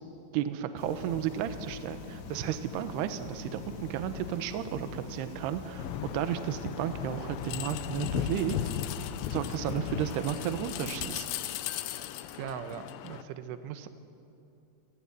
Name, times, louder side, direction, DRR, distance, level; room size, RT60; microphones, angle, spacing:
voice 1, 0.3-8.6 9.3-11.6, right 10 dB, 70° right, 10 dB, 2.8 m, -33 dB
sound 1, 0.8-10.9, left 5 dB, 55° left, 2.5 m, -44 dB
sound 2, 5.8-13.2, left 11 dB, 75° left, 2.9 m, -36 dB
voice 2, 12.4-13.9, right 8 dB, 85° right, 9 dB, 3.5 m, -40 dB
30.0 x 18.0 x 9.8 m, 2.7 s
omnidirectional pair, 5.6 m